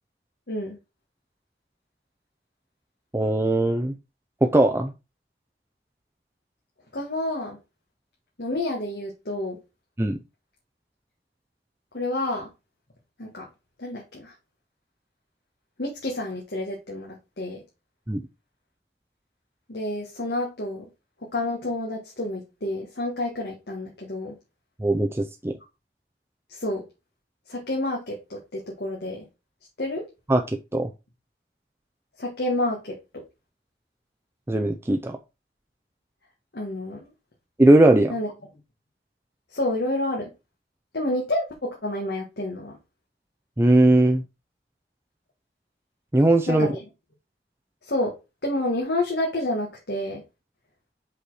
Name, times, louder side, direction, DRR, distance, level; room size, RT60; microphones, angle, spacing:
voice 1, 3.1-3.9 4.4-4.9 10.0-10.2 18.1-18.2 24.8-25.6 30.3-30.9 34.5-35.2 37.6-38.1 43.6-44.2 46.1-46.7, right 1 dB, 15° right, 4 dB, 0.5 m, -19 dB
voice 2, 6.9-7.6 8.4-9.6 11.9-12.5 13.2-13.5 13.8-14.3 15.8-17.6 19.7-20.9 21.3-24.3 26.5-26.8 27.5-29.2 29.8-30.0 32.2-33.2 36.5-37.0 38.1-38.3 39.5-40.3 40.9-42.7 46.5-46.8 47.8-48.1 48.4-50.2, left 1 dB, 70° left, -1 dB, 1.5 m, -29 dB
5.4 x 4.3 x 4.7 m, 0.26 s
head